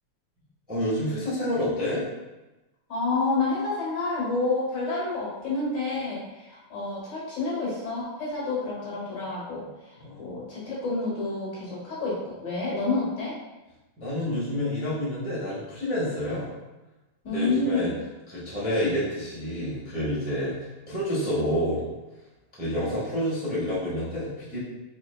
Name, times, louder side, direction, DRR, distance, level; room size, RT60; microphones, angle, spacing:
voice 1, 0.7-2.0 10.0-10.2 14.0-16.5 17.3-17.9 18.3-20.5 20.9-21.8 22.6-24.6, equal, 5° right, -10 dB, 0.8 m, -28 dB
voice 2, 2.9-13.4 17.2-17.9, left 3 dB, 60° left, -6 dB, 1.5 m, -29 dB
4.5 x 3.4 x 2.2 m, 1.1 s
omnidirectional pair, 2.4 m